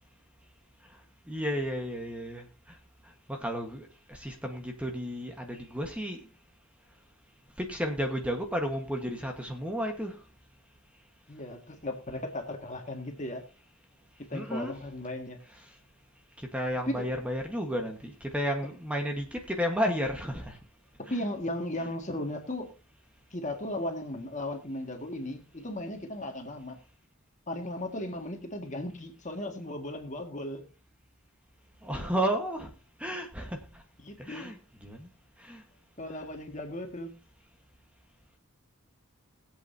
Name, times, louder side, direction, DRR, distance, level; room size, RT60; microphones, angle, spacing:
voice 1, 0.8-2.8 3.0-6.3 7.6-10.3 14.3-14.8 15.5-15.8 16.4-20.6 21.1-21.2 31.8-32.7 33.0-33.8 34.2-35.1 35.4-35.6, equal, 5° right, 3 dB, 1.4 m, -33 dB
voice 2, 11.3-13.4 14.3-15.4 16.8-17.1 21.1-22.7 23.3-26.8 27.5-30.7 34.0-34.5 36.0-37.1, left 1 dB, 35° left, 4 dB, 1.9 m, -36 dB
21.5 x 8.1 x 2.8 m, 0.31 s
head